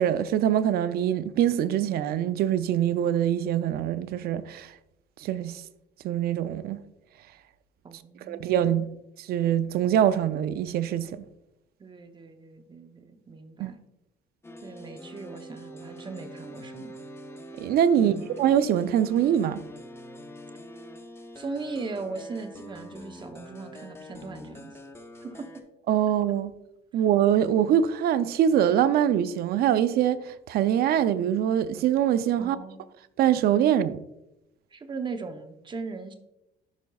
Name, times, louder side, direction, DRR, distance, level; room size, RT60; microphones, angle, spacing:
voice 1, 0.0-4.7 5.2-5.6 6.0-6.8 8.3-8.9 9.2-11.2 13.6-13.7 17.6-19.6 25.9-26.5 26.9-32.6 33.2-34.0, right 10 dB, 65° right, 0.5 m, -24 dB
voice 2, 7.8-8.5 11.8-13.8 14.6-17.0 18.0-18.2 21.4-24.8 25.2-25.5 32.4-32.8 34.7-36.1, right 4 dB, 25° right, 0.7 m, -38 dB
Friendly disease, 14.4-25.6, equal, 15° left, 0.7 m, -45 dB
11.0 x 5.2 x 2.3 m
cardioid pair, 110°, 17 cm